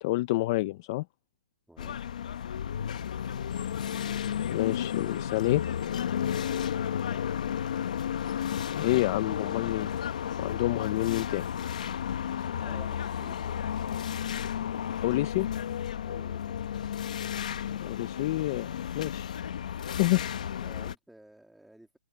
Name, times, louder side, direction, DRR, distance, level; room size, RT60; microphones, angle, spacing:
voice 1, 0.0-1.0 4.5-5.6 8.7-9.9 10.4-11.5 15.0-15.5 17.8-19.3 20.0-20.3, left 18 dB, 25° left, 0.5 m, -28 dB
voice 2, 1.7-2.0 7.1-7.2 12.6-13.6 16.0-16.6 20.6-22.0, right 1 dB, ahead, 1.9 m, -52 dB
sound 1, 1.8-20.9, left 9 dB, 55° left, 1.1 m, -33 dB
open air
hypercardioid pair, 175°, 5 cm